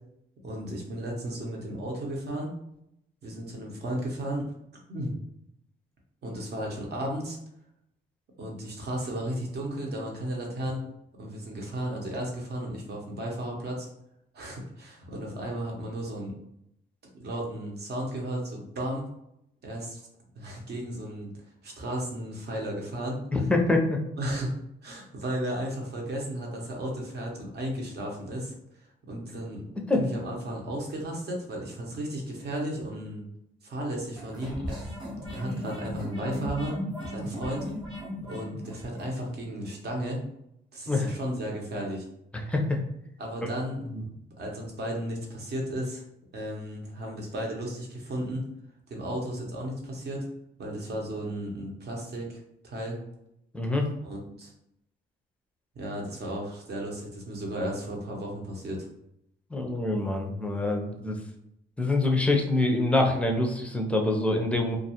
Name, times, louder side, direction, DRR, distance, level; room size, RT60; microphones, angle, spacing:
voice 1, 0.4-2.5 3.2-4.4 4.9-5.1 6.2-7.4 8.4-10.8 11.2-13.9 14.3-16.3 17.2-19.1 19.6-20.0 20.3-21.3 21.6-23.2 24.2-24.5 24.8-28.5 29.1-29.6 29.9-33.2 33.6-34.9 35.2-36.8 37.1-37.7 38.2-40.2 40.7-42.0 43.2-46.0 46.3-48.5 48.9-50.3 50.6-53.0 54.0-54.5 55.8-58.9, right 1 dB, 55° right, 0 dB, 0.8 m, -34 dB
voice 2, 23.3-24.0 29.9-30.0 40.9-41.1 42.3-42.8 43.8-44.0 53.5-53.9 59.5-61.2 61.8-64.8, left 2 dB, 5° left, 2 dB, 0.5 m, -25 dB
sound 1, 34.2-39.1, equal, 20° right, 1.0 m, -37 dB
2.3 x 2.3 x 2.8 m, 0.78 s
cardioid pair, 90°, 20 cm